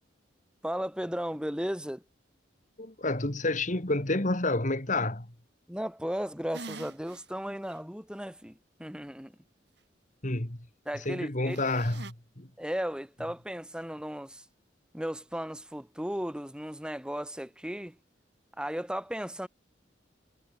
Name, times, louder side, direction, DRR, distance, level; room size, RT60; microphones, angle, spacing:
voice 1, 0.6-2.0 5.7-8.5 8.8-9.3 10.8-11.6 12.6-14.4 14.9-18.0 18.6-19.5, equal, 5° right, 3.4 m, -35 dB
voice 2, 2.8-5.3 10.2-10.6 11.0-12.5, left 2 dB, 40° left, 2.3 m, -29 dB
sound 1, 6.5-7.2 7.7-7.8 11.5-12.1, right 3 dB, 60° right, 2.4 m, -44 dB
head